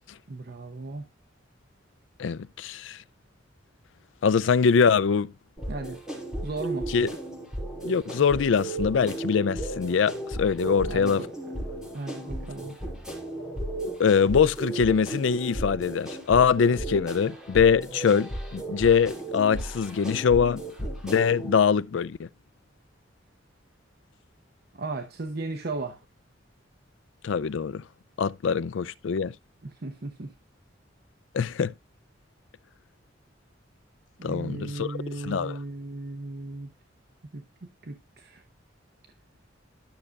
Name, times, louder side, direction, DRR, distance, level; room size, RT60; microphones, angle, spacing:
voice 1, 0.3-1.0 5.7-6.0 6.4-6.9 10.6-11.3 11.9-12.7 24.7-26.0 29.6-30.3 34.2-36.7 37.3-38.4, right 2 dB, 55° right, 0.8 m, -36 dB
voice 2, 2.2-3.0 4.2-5.3 6.9-7.1 7.8-11.2 14.0-20.6 21.0-22.3 27.2-27.8 28.2-29.3 31.3-31.7 34.2-35.0 35.2-35.6, left 6 dB, 75° left, 0.4 m, -23 dB
sound 1, 5.6-21.6, right 1 dB, 5° right, 5.1 m, -35 dB
12.0 x 6.5 x 2.3 m
head